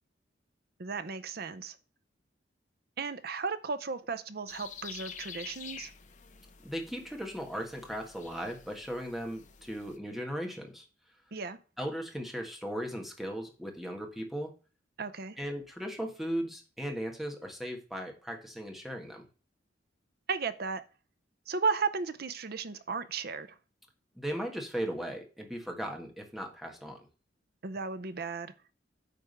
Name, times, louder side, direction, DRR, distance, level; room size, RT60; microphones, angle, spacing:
voice 1, 0.8-1.8 3.0-5.9 11.3-11.6 15.0-15.4 20.3-20.8 21.5-23.6 27.6-28.5, right 4 dB, 55° right, 0.7 m, -34 dB
sound 1, 4.5-10.0, left 7 dB, 45° left, 0.8 m, -48 dB
voice 2, 6.6-10.9 11.8-14.5 15.4-19.2 24.1-27.1, equal, ahead, 1.5 m, -37 dB
9.3 x 3.6 x 6.6 m
head